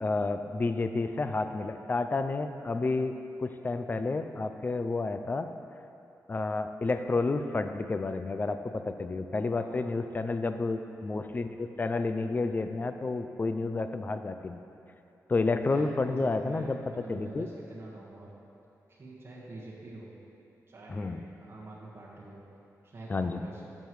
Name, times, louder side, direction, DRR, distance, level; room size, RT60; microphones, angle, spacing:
voice 1, 0.0-5.5 6.3-14.6 15.3-17.5 20.9-21.2 23.1-23.4, left 3 dB, 30° left, 9 dB, 0.4 m, -30 dB
voice 2, 9.5-10.0 15.7-18.3 18.9-20.1 20.7-22.4 22.8-23.7, right 2 dB, 40° right, -7 dB, 1.5 m, -46 dB
11.5 x 7.4 x 3.2 m, 2.8 s
wide cardioid pair, 100°, 6 cm